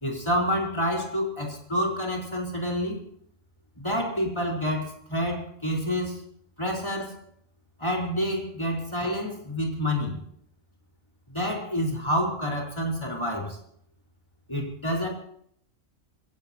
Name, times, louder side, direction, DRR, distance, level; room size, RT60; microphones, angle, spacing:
voice 1, 0.0-3.0 3.8-6.2 6.6-7.2 7.8-10.2 11.3-13.6 14.5-15.1, equal, 20° left, 0 dB, 4.4 m, -28 dB
25.0 x 17.0 x 2.9 m, 0.66 s
omnidirectional pair, 1.4 m